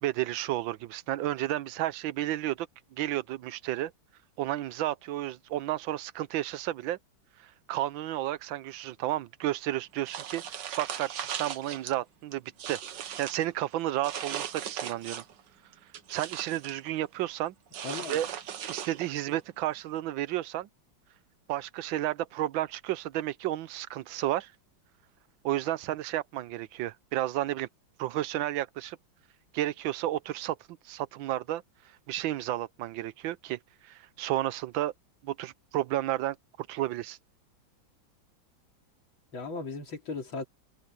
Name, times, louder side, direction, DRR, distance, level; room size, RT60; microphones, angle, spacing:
voice 1, 0.0-2.7 2.9-3.9 4.4-7.0 7.4-15.2 16.1-17.5 18.1-18.3 18.7-20.7 21.5-24.5 25.4-27.7 28.0-29.0 29.5-30.6 30.8-31.6 32.1-34.9 35.2-37.2, right 14 dB, 80° right, 1.5 m, -32 dB
sound 1, 10.1-11.9 12.3-13.5 14.0-15.4 15.7-16.8 17.7-19.2, right 9 dB, 65° right, 1.7 m, -38 dB
voice 2, 17.8-18.2 39.3-40.4, left 4 dB, 85° left, 3.7 m, -36 dB
omnidirectional pair, 2.1 m